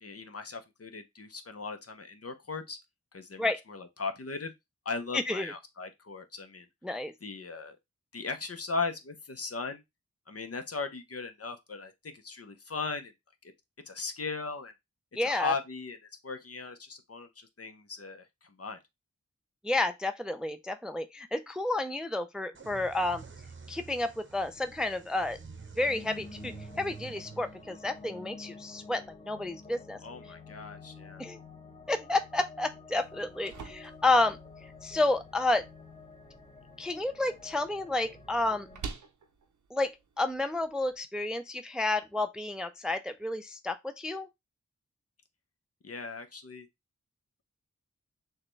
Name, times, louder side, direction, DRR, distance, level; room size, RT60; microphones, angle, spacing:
voice 1, 0.0-2.8 3.1-4.5 4.8-6.7 7.2-7.8 8.1-9.8 10.3-13.1 13.9-14.7 15.2-16.0 16.2-18.8 30.0-31.2 45.8-46.7, left 4 dB, 50° left, 0.8 m, -38 dB
voice 2, 5.1-5.5 6.8-7.1 15.1-15.5 19.6-23.2 23.7-25.4 25.8-30.0 31.2-31.4 31.9-34.4 34.8-35.7 36.8-38.7 39.7-44.3, left 2 dB, ahead, 0.4 m, -30 dB
sound 1, 22.5-30.1, right 5 dB, 40° right, 0.8 m, -49 dB
sound 2, 25.9-38.8, left 4 dB, 20° left, 1.0 m, -50 dB
sound 3, 33.0-41.0, right 5 dB, 80° right, 0.7 m, -49 dB
6.4 x 2.3 x 3.1 m
wide cardioid pair, 65°, 30 cm